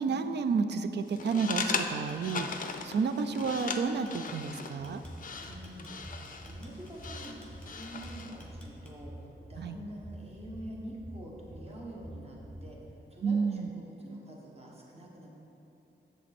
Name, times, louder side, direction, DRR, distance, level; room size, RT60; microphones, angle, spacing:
voice 1, 0.0-5.0 9.6-9.8 13.2-13.7, right 5 dB, 65° right, 10 dB, 0.4 m, -31 dB
sound 1, 1.1-8.4, left 5 dB, 45° left, 0.4 m, -38 dB
sound 2, 1.7-9.2, left 1 dB, 5° left, 1.0 m, -57 dB
sound 3, 4.8-12.7, right 1 dB, 15° right, 0.8 m, -46 dB
voice 2, 5.4-9.1 9.5-12.8 13.1-15.3, right 1 dB, 30° right, -3 dB, 1.4 m, -46 dB
7.5 x 6.8 x 4.2 m, 2.9 s
wide cardioid pair, 135°, 19 cm